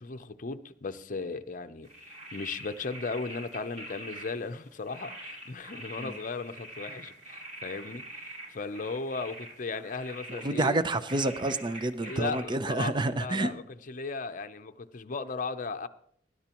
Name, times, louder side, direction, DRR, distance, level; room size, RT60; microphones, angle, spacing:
voice 1, 0.0-1.9 2.3-10.7 12.0-15.9, left 4 dB, 45° left, 0.7 m, -36 dB
sound 1, 1.8-12.4, right 1 dB, 45° right, 3.7 m, -45 dB
voice 2, 10.3-13.5, right 2 dB, 25° right, 0.5 m, -29 dB
20.0 x 11.0 x 3.0 m
head